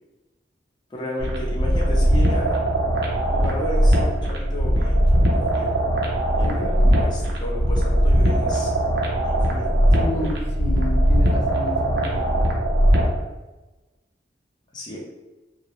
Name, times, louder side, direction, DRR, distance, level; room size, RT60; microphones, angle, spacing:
voice 1, 0.9-2.6 3.3-5.8 6.3-8.7 9.2-10.3 14.7-15.0, equal, 25° left, -4 dB, 0.5 m, -33 dB
sound 1, 1.2-13.2, equal, 70° right, 0.5 m, -20 dB
voice 2, 6.4-7.1 9.9-12.5, left 1 dB, 75° left, -2 dB, 0.6 m, -32 dB
2.3 x 2.0 x 2.9 m, 1.1 s
head